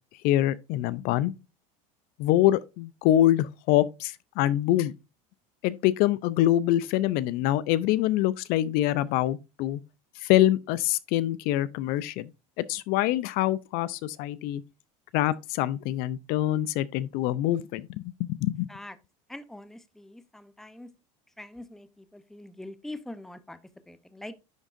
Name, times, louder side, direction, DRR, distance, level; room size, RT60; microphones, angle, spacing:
voice 1, 0.2-1.3 2.2-4.9 5.6-9.8 10.2-12.3 12.6-14.6 15.1-18.7, left 14 dB, 60° left, 0.4 m, -25 dB
voice 2, 19.3-20.9 21.4-23.6 23.9-24.3, left 1 dB, ahead, 0.6 m, -43 dB
10.5 x 3.6 x 2.5 m
supercardioid pair, 110°, 18 cm